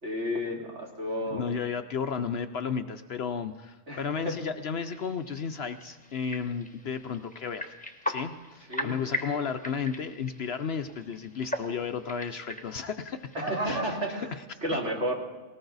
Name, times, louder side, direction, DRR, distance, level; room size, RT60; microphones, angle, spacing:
voice 1, 0.0-1.5 3.9-4.3 8.7-9.4 13.3-14.3 14.6-15.1, equal, 60° right, -1 dB, 3.1 m, -32 dB
voice 2, 1.2-7.7 8.1-13.2 13.7-13.8 14.1-14.4, left 6 dB, 60° left, 8 dB, 0.8 m, -33 dB
sound 1, 4.9-14.2, left 1 dB, 5° left, 1.0 m, -40 dB
19.0 x 18.5 x 4.0 m, 1.2 s
omnidirectional pair, 1.4 m